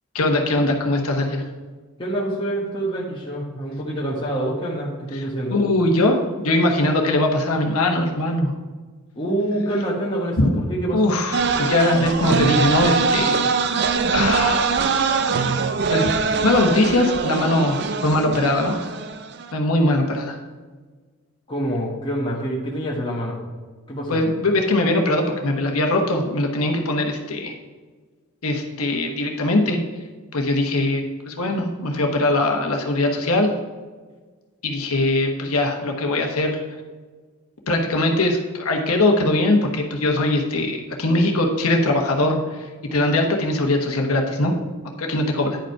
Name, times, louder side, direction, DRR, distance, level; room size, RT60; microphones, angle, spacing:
voice 1, 0.1-1.4 5.1-8.5 10.4-10.6 10.9-13.5 14.1-15.5 15.9-16.1 16.4-18.9 19.5-20.4 24.1-27.5 28.4-29.8 30.3-33.5 34.6-36.6 37.7-44.5 45.0-45.6, left 1 dB, 80° left, 2 dB, 1.2 m, -21 dB
voice 2, 2.0-5.6 9.1-11.2 21.5-23.4 23.9-24.2, right 1 dB, 20° left, -5 dB, 1.4 m, -26 dB
sound 1, 11.3-19.5, right 5 dB, 50° right, 0.5 m, -22 dB
10.5 x 5.2 x 4.7 m, 1.4 s
head